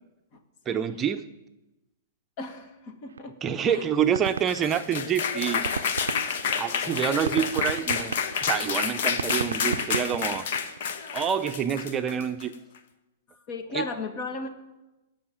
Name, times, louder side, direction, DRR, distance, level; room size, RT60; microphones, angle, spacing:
voice 1, 0.7-1.2 3.4-5.6 6.6-8.1 8.4-10.5 11.1-12.5 13.7-13.9, right 8 dB, 25° right, 7 dB, 0.6 m, -27 dB
voice 2, 2.4-3.3 3.7-3.9 13.3-14.5, left 3 dB, 45° left, 6 dB, 2.0 m, -35 dB
sound 1, 3.2-3.3 3.5-3.6 3.9-5.2 5.5-10.8, right 6 dB, 85° right, 0.4 m, -34 dB
sound 2, 4.3-12.5, left 6 dB, 60° left, 1.2 m, -29 dB
16.5 x 5.7 x 8.9 m, 1.0 s
hypercardioid pair, 125°, 0 cm